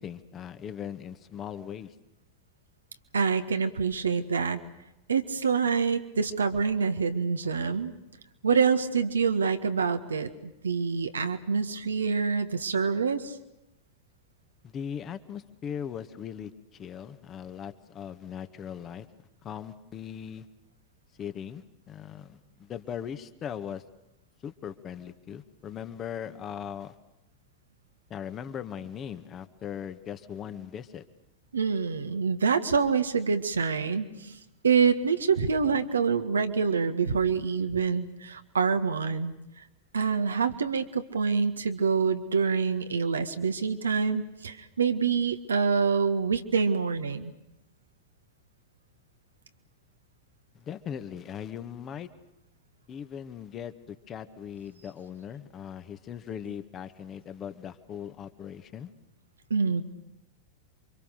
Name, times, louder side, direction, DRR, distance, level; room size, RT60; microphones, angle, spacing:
voice 1, 0.0-1.9 14.6-19.1 19.4-20.5 21.2-23.8 24.4-26.9 28.1-31.1 50.5-52.1 52.9-58.9, left 8 dB, 30° left, 11 dB, 1.8 m, -39 dB
voice 2, 3.1-4.6 5.1-7.9 8.4-13.3 31.5-34.4 34.6-39.3 39.9-47.3 59.5-59.8, right 5 dB, 70° right, 8 dB, 1.7 m, -26 dB
28.5 x 25.0 x 6.7 m, 0.91 s
figure-of-eight pair, 90°, 0 cm